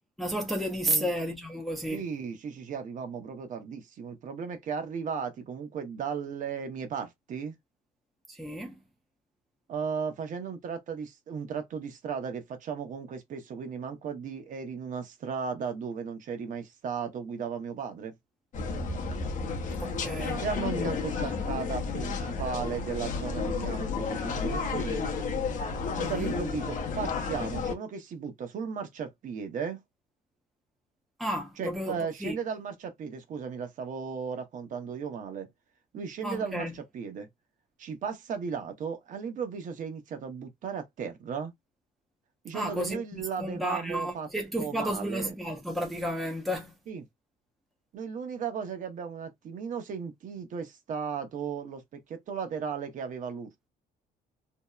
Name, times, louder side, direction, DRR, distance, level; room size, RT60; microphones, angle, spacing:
voice 1, 0.2-2.0 8.3-8.8 19.8-20.4 26.0-26.3 31.2-32.4 36.2-36.8 42.5-46.8, equal, ahead, 0.5 m, -32 dB
voice 2, 1.9-7.5 9.7-18.1 20.2-25.0 26.0-29.8 31.6-35.5 35.9-37.3 37.8-41.5 42.4-44.3 44.6-45.3 46.9-47.0 47.9-53.7, right 6 dB, 50° right, 0.7 m, -36 dB
sound 1, 18.5-27.8, left 4 dB, 50° left, 0.6 m, -32 dB
2.7 x 2.0 x 2.2 m
cardioid pair, 110°, 17 cm